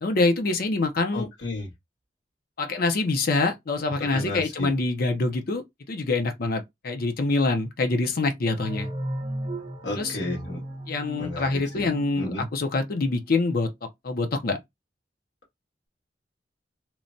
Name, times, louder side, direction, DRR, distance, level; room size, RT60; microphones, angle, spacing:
voice 1, 0.0-1.3 2.6-8.9 10.0-10.2 10.9-13.7 14.0-14.6, left 3 dB, 55° left, 0.5 m, -25 dB
voice 2, 1.1-1.7 4.1-4.7 9.8-10.6 11.2-11.5 11.7-11.9 12.1-12.4, left 2 dB, 85° left, 1.6 m, -32 dB
sound 1, 8.6-13.1, right 1 dB, 30° right, 0.9 m, -35 dB
3.0 x 2.1 x 2.6 m
head